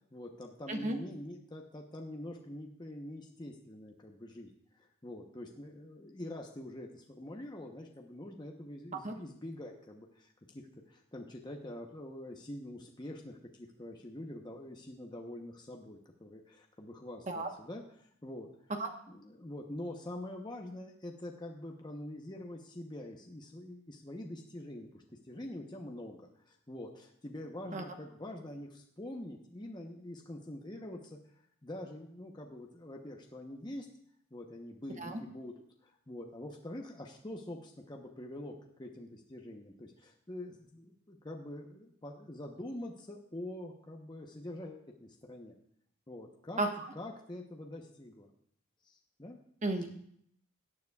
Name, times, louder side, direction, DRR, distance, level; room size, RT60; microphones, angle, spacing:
voice 1, 0.1-4.5 5.0-18.5 19.1-26.2 26.5-31.2 31.6-33.9 34.3-35.6 35.8-45.5 46.1-46.6 46.9-48.3 48.9-49.4, left 1 dB, 20° left, 1 dB, 0.8 m, -45 dB
voice 2, 0.7-1.0 9.0-9.1 17.3-17.5 18.8-18.9 27.7-27.8 35.0-35.2 46.6-46.7 49.6-49.9, right 2 dB, 35° right, 4 dB, 1.1 m, -33 dB
17.5 x 9.4 x 2.4 m, 0.68 s
head